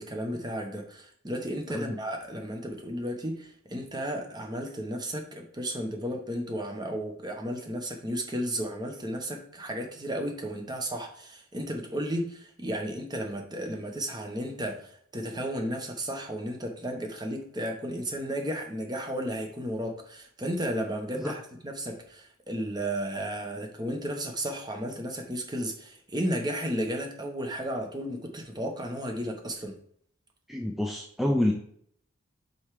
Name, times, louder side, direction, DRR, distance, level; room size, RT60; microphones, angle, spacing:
voice 1, 0.0-29.7, equal, 20° right, 3 dB, 1.0 m, -33 dB
voice 2, 30.5-31.5, left 1 dB, ahead, 0 dB, 0.5 m, -27 dB
5.5 x 4.6 x 4.9 m, 0.65 s
head